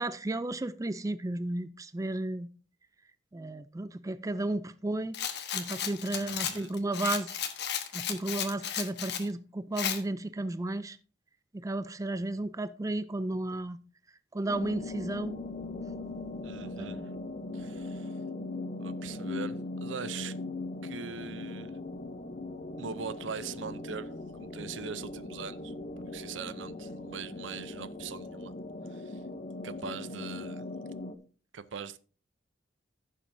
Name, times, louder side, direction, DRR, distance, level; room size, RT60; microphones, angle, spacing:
voice 1, 0.0-2.5 3.3-5.2 5.5-7.4 7.9-11.0 11.5-13.8 14.3-15.4 16.6-17.0, right 2 dB, 20° right, 0.4 m, -33 dB
Rattle, 5.1-9.3 9.8-10.0, left 9 dB, 65° left, 1.3 m, -34 dB
voice 2, 6.1-6.7 16.4-17.0 17.5-18.2 18.8-20.4 20.8-21.7 22.8-25.7 26.1-28.5 28.9-29.2 29.6-30.6 31.5-32.0, right 6 dB, 85° right, 0.6 m, -41 dB
sound 1, 14.5-31.1, left 2 dB, 40° left, 0.8 m, -39 dB
15.5 x 7.2 x 2.7 m
head